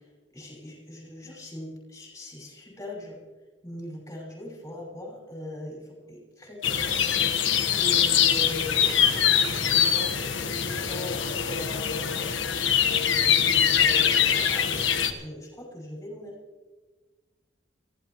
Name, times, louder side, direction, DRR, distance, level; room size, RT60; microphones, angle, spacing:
voice 1, 0.3-3.2 3.6-12.3 13.3-16.4, left 1 dB, 15° left, -3 dB, 5.7 m, -40 dB
sound 1, 6.6-15.1, left 8 dB, 80° left, 1.4 m, -23 dB
28.5 x 15.5 x 3.1 m, 1.3 s
head